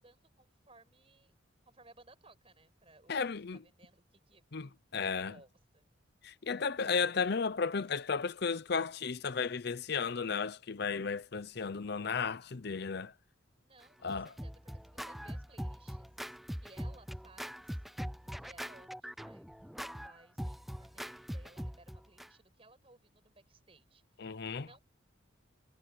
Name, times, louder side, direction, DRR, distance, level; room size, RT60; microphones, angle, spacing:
voice 1, 0.0-1.3 1.7-3.2 3.5-4.5 5.0-5.9 13.6-16.1 16.6-17.8 18.1-24.8, right 2 dB, 30° right, 5.6 m, -61 dB
voice 2, 3.1-3.6 4.5-5.4 6.2-13.1 14.0-14.3 24.2-24.7, left 5 dB, 55° left, 0.6 m, -34 dB
Scratching (performance technique), 13.8-22.3, equal, ahead, 0.3 m, -42 dB
head